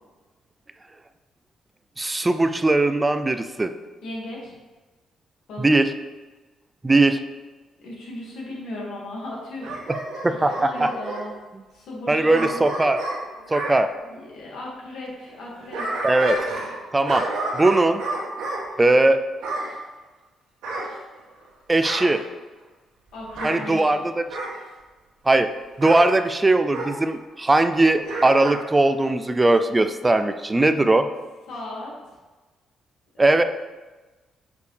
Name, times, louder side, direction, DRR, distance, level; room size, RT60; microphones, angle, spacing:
voice 1, 2.0-3.7 5.6-5.9 6.8-7.2 10.2-10.5 10.8-10.9 12.1-13.0 13.5-13.9 16.0-16.4 16.9-17.2 17.5-18.0 18.8-19.2 21.7-22.2 23.4-24.2 25.3-25.5 25.8-31.1 33.2-33.4, right 2 dB, 20° right, 9 dB, 0.4 m, -19 dB
voice 2, 4.0-4.5 5.5-5.7 7.8-9.7 10.2-11.3 11.7-12.6 14.1-16.1 23.1-24.1 31.5-31.9, left 1 dB, 80° left, -3 dB, 2.1 m, -36 dB
Bark / Growling, 9.6-11.2 12.3-13.8 15.4-16.8 17.1-18.6 19.4-19.7 20.6-21.4 21.8-22.2 23.3-23.6 24.3-24.6 25.8-26.1 26.7-26.9 28.0-28.6 29.0-29.1, right 2 dB, 85° right, 1.8 m, -30 dB
6.6 x 5.1 x 3.3 m, 1.2 s
cardioid pair, 90°, 0 cm